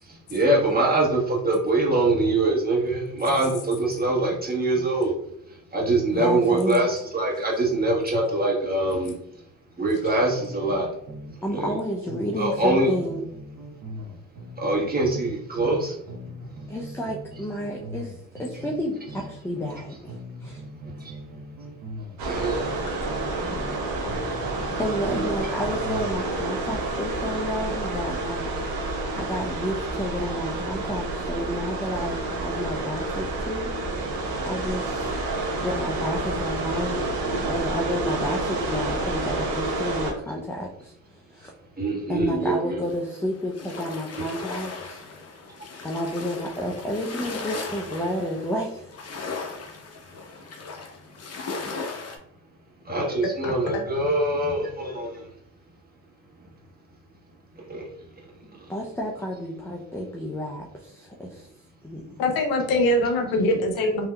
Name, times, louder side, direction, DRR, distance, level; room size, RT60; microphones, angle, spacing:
voice 1, 0.0-5.1 5.5-9.1 9.8-10.9 11.5-11.8 12.4-12.9 14.6-16.0 16.6-16.7 20.8-21.2 22.2-22.7 28.6-28.7 41.4-41.5 41.7-42.8 44.2-44.3 52.8-55.3 57.6-57.9 58.6-58.7, right 2 dB, 25° right, -3 dB, 1.3 m, -24 dB
voice 2, 6.1-6.9 11.4-13.2 16.7-20.6 24.8-34.2 34.4-35.1 35.6-37.1 37.4-41.5 42.1-45.0 45.8-49.0 58.7-61.5 61.8-62.2, equal, 5° left, -1 dB, 0.4 m, -31 dB
sound 1, 10.4-11.8 12.1-15.8 16.1-19.8 20.1-23.8 24.1-26.2, equal, 55° right, 0.8 m, -40 dB
sound 2, 22.2-40.1, right 2 dB, 85° right, 0.8 m, -29 dB
sound 3, 42.8-52.2, left 4 dB, 45° left, 0.8 m, -37 dB
voice 3, 53.4-53.8 58.4-58.5 62.2-64.1, left 1 dB, 90° left, 4 dB, 0.7 m, -24 dB
3.4 x 2.8 x 2.2 m, 0.75 s
supercardioid pair, 70°, 35 cm